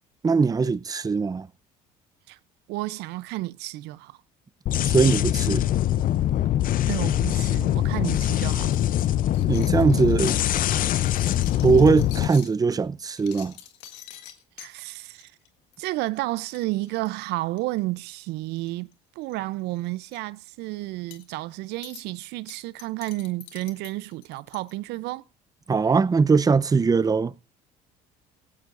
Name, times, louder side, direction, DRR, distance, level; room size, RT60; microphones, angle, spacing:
voice 1, 0.2-1.5 4.8-5.6 9.5-10.4 11.6-13.5 25.7-27.3, right 5 dB, 20° right, 0.6 m, -21 dB
voice 2, 2.7-4.2 6.9-8.8 14.6-15.3 15.8-18.9 19.2-25.2, right 18 dB, 70° right, 0.6 m, -31 dB
sound 1, 4.7-12.3, left 12 dB, 50° left, 0.6 m, -23 dB
sound 2, 8.7-12.5 13.0-14.7 15.2-15.5 15.7-15.9 16.1-16.2 16.4-17.8 18.6-18.9 19.2-19.4 19.8-20.2 21.1-21.3 21.8-22.0 22.5-24.7, left 12 dB, 75° left, 1.7 m, -46 dB
17.5 x 16.0 x 2.5 m
hypercardioid pair, 75°, 18 cm